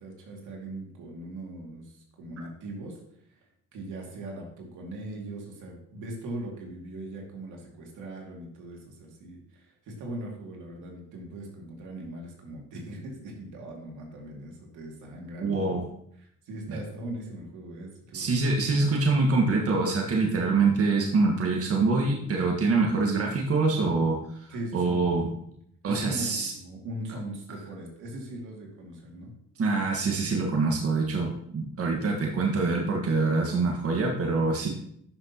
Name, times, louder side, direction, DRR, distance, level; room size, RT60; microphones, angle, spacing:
voice 1, 0.0-3.0 3.7-15.6 16.2-18.4 24.5-25.0 25.9-29.3, right 1 dB, 80° right, -1 dB, 2.4 m, -40 dB
voice 2, 15.4-15.9 16.7-16.8 18.1-25.3 25.8-26.5 29.6-34.7, right 3 dB, 50° right, 0 dB, 1.6 m, -25 dB
11.5 x 6.1 x 3.0 m, 0.70 s
cardioid pair, 90°, 30 cm